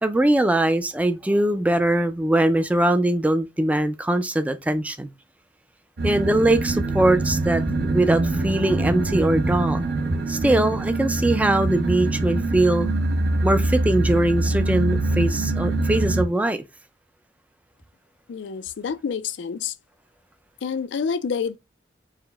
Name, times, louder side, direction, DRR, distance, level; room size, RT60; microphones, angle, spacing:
voice 1, 0.0-5.1 6.0-9.8 10.3-12.9 13.4-16.6, right 1 dB, 10° right, 0.4 m, -21 dB
sound 1, 6.0-16.2, right 2 dB, 65° right, 0.6 m, -24 dB
voice 2, 18.3-19.7 20.6-21.6, left 6 dB, 80° left, 0.4 m, -28 dB
4.8 x 2.1 x 3.3 m
head